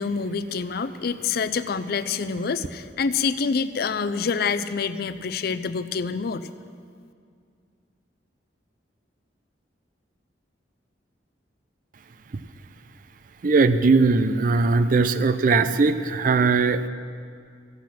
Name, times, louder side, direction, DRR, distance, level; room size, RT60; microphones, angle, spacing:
voice 1, 0.0-6.5, left 5 dB, 55° left, 13 dB, 0.5 m, -26 dB
voice 2, 13.4-16.9, right 4 dB, 45° right, 12 dB, 0.5 m, -19 dB
14.5 x 8.4 x 6.0 m, 2.2 s
head